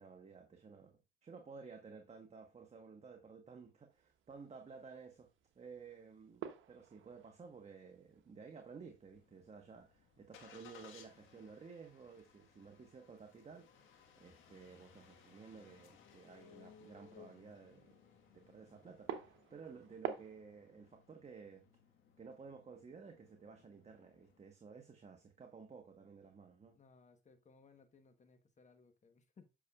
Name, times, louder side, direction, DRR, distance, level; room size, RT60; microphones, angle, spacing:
voice 1, 0.0-5.3 5.5-13.9 14.2-18.0 18.3-21.6 22.2-26.8, right 5 dB, 35° right, 1.1 m, -54 dB
sound 1, 3.9-20.4, right 9 dB, 75° right, 0.9 m, -53 dB
Engine starting, 9.1-24.4, left 7 dB, 80° left, 1.5 m, -63 dB
voice 2, 26.7-29.5, left 4 dB, 35° left, 1.2 m, -64 dB
8.3 x 5.9 x 2.4 m
cardioid pair, 90°, 20 cm